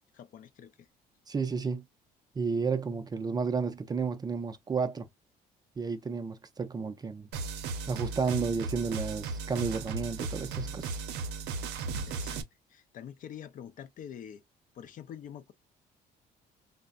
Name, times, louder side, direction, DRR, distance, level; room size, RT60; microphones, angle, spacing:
voice 1, 0.1-0.9 12.0-14.4 14.7-15.5, left 9 dB, 50° left, 0.5 m, -46 dB
voice 2, 1.3-1.8 2.4-5.1 5.8-7.3 7.9-11.0, right 5 dB, 25° right, 0.4 m, -32 dB
sound 1, 7.3-12.4, right 4 dB, 85° right, 0.6 m, -36 dB
3.3 x 2.0 x 2.3 m
cardioid pair, 110°, 17 cm